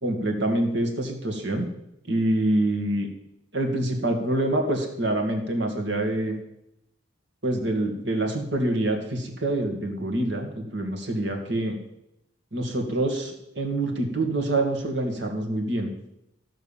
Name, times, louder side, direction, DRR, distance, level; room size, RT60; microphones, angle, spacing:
voice 1, 0.0-1.7 2.1-3.1 3.5-6.4 7.4-11.8 12.5-15.9, right 1 dB, 60° right, 4 dB, 2.2 m, -26 dB
15.0 x 6.1 x 7.3 m, 0.82 s
head